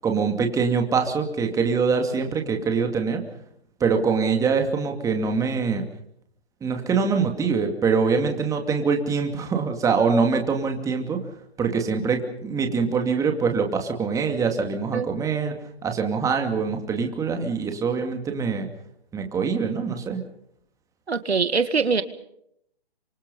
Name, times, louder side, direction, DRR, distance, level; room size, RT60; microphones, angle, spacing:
voice 1, 0.0-3.2 3.8-5.8 6.6-11.2 11.6-18.7 19.1-20.2, right 5 dB, 10° right, 4 dB, 2.6 m, -24 dB
voice 2, 21.1-22.0, right 5 dB, 85° right, 11 dB, 2.1 m, -22 dB
28.0 x 25.5 x 5.6 m, 0.74 s
hypercardioid pair, 145°, 31 cm